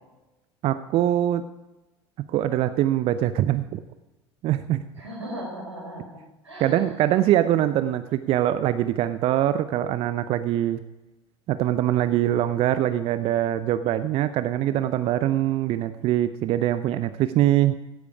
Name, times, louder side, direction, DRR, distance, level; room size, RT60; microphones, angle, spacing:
voice 1, 0.6-1.5 2.3-3.8 4.4-4.8 6.6-10.8 11.5-17.7, right 12 dB, 45° right, 12 dB, 0.6 m, -23 dB
voice 2, 4.9-7.0, equal, 90° right, -1 dB, 3.9 m, -38 dB
16.5 x 8.3 x 4.8 m, 1.0 s
figure-of-eight pair, 70°, 14 cm